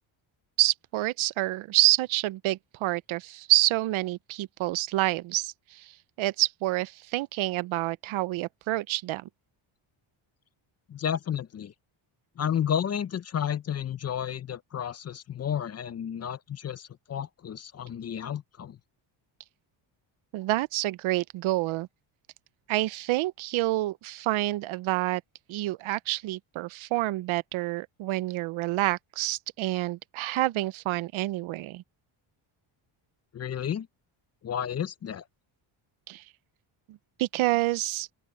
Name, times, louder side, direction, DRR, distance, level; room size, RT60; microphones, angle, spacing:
voice 1, 0.6-9.3 20.3-21.9 22.7-25.2 25.5-31.8 36.1-36.2 36.9-38.1, right 17 dB, 75° right, 0.8 m, -28 dB
voice 2, 10.9-11.7 12.4-18.8 33.3-33.9 34.4-35.2, left 9 dB, 30° left, 0.6 m, -32 dB
open air
cardioid pair, 150°, 49 cm